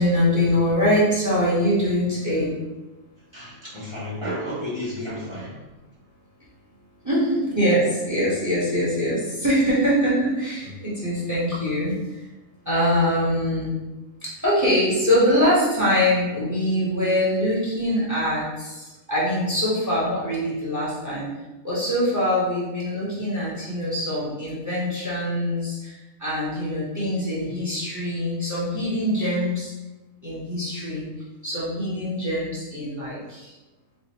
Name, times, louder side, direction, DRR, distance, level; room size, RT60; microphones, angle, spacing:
voice 1, 0.0-2.5 7.0-12.2 12.6-13.8 14.4-21.3 21.6-29.7 30.2-31.1 31.4-33.5, equal, 15° right, -8 dB, 1.0 m, -23 dB
voice 2, 3.3-5.6, equal, 25° left, -10 dB, 0.9 m, -32 dB
4.3 x 2.6 x 2.9 m, 1.1 s
omnidirectional pair, 1.4 m